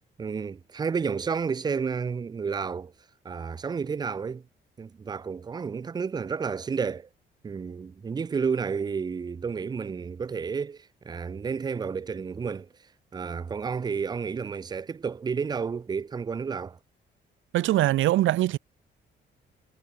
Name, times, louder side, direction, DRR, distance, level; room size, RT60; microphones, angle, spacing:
voice 1, 0.2-2.9 3.2-4.4 4.8-7.1 7.4-12.7 13.1-16.8, right 5 dB, 20° right, 0.4 m, -31 dB
voice 2, 17.5-18.6, right 15 dB, 75° right, 0.7 m, -22 dB
cardioid pair, 90°, 20 cm